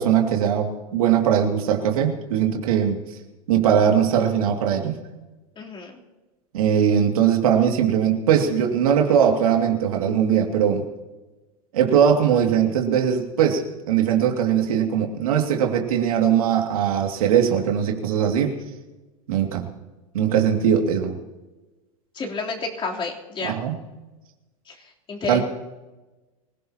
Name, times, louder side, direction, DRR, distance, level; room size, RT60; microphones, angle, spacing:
voice 1, 0.0-3.2 3.5-5.0 6.5-10.8 11.7-18.6 19.3-19.7 20.1-21.2 23.4-23.8 25.3-25.4, right 8 dB, 70° right, 3 dB, 2.5 m, -20 dB
voice 2, 5.6-6.0 22.1-23.6 24.7-24.8 25.1-25.4, left 4 dB, 25° left, -1 dB, 3.6 m, -30 dB
24.5 x 16.5 x 3.0 m, 1.1 s
hypercardioid pair, 90°, 19 cm